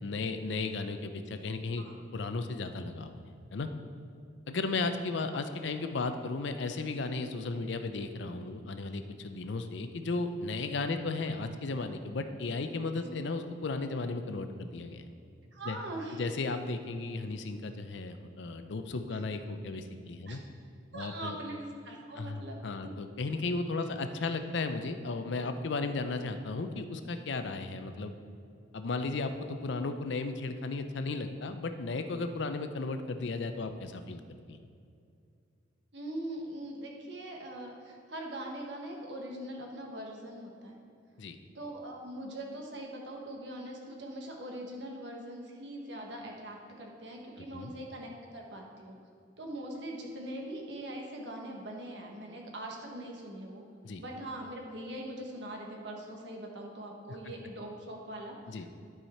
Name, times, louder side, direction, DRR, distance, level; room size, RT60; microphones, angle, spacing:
voice 1, 0.0-3.2 3.5-3.7 4.5-15.1 15.7-15.8 16.2-20.4 20.9-21.4 22.2-28.1 28.7-34.2 34.5-34.6 41.2-41.4 47.5-47.7 53.8-54.0 58.5-58.7, left 3 dB, 65° left, 8 dB, 0.5 m, -35 dB
voice 2, 15.5-16.3 20.3-20.4 20.9-22.9 35.9-40.8 41.5-49.0 49.4-53.6 54.0-58.7, right 1 dB, 60° right, 0 dB, 1.3 m, -42 dB
11.5 x 4.8 x 4.3 m, 2.4 s
head